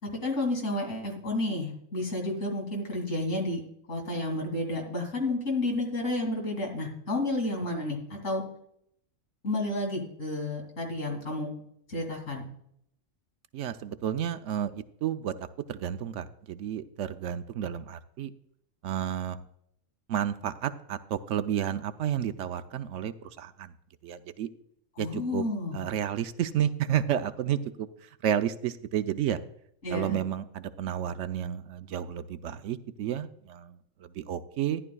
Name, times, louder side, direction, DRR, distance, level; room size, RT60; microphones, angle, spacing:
voice 1, 0.0-3.6 3.9-8.4 9.4-11.5 11.9-12.4 25.0-25.8 29.8-30.2, left 2 dB, 75° left, 0 dB, 3.0 m, -31 dB
voice 2, 13.5-15.3 15.7-18.3 18.8-19.4 20.1-23.7 24.0-24.5 25.0-25.5 25.7-29.4 29.9-34.8, right 10 dB, 75° right, 11 dB, 0.9 m, -31 dB
13.5 x 11.0 x 2.3 m, 0.71 s
omnidirectional pair, 1.3 m